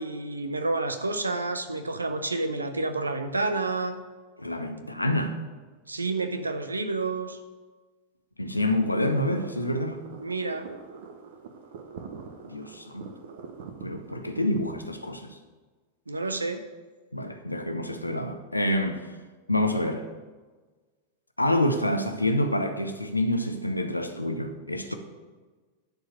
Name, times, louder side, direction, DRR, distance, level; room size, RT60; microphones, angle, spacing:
voice 1, 0.0-4.0 5.9-7.4 10.2-10.7 16.1-16.6 24.9-25.0, right 3 dB, 80° right, 0.8 m, -29 dB
voice 2, 4.4-5.4 8.4-10.0 12.4-13.1 13.8-15.4 17.1-19.1 19.5-20.1 21.4-24.9, left 1 dB, 85° left, 0.8 m, -27 dB
sound 1, 8.6-14.7, right 5 dB, 55° right, 1.0 m, -43 dB
10.5 x 4.8 x 6.4 m
figure-of-eight pair, 90°, 0 cm